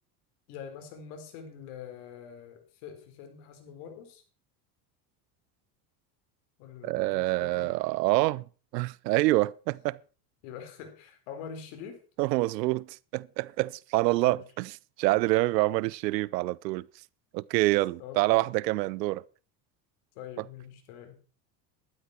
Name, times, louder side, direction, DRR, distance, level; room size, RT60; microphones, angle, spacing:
voice 1, 0.5-4.2 6.6-7.7 10.4-12.0 14.2-14.4 18.0-18.5 20.1-21.2, left 7 dB, 70° left, 4.5 m, -44 dB
voice 2, 6.8-8.4 8.7-10.0 12.2-16.9 17.3-19.2, right 19 dB, 90° right, 0.7 m, -26 dB
13.5 x 11.5 x 4.4 m
supercardioid pair, 105°, 48 cm